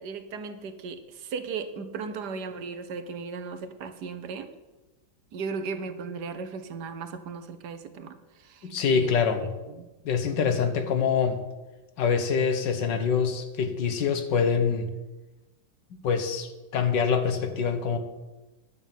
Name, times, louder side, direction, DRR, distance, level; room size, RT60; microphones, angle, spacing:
voice 1, 0.0-4.5 5.3-9.1 9.7-9.9, right 5 dB, 70° right, 1.5 m, -36 dB
voice 2, 8.6-9.5 10.1-11.4 12.0-14.9 16.0-18.0, left 6 dB, 85° left, 1.8 m, -25 dB
11.0 x 6.2 x 9.1 m
omnidirectional pair, 1.9 m